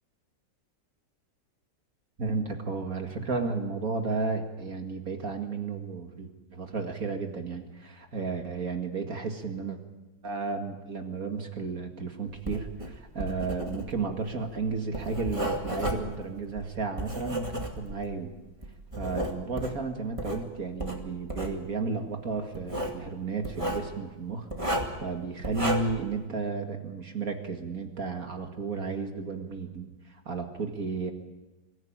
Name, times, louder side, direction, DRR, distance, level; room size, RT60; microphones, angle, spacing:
voice 1, 2.2-9.8 10.2-18.3 19.0-31.1, right 4 dB, 50° right, 4 dB, 2.4 m, -33 dB
Writing, 12.3-18.1 18.6-20.4 20.8-21.6 22.5-23.0 23.4-23.9 24.5-25.0 25.4-26.0, right 1 dB, 15° right, 2.3 m, -33 dB
24.0 x 15.0 x 8.9 m, 1.2 s
omnidirectional pair, 1.9 m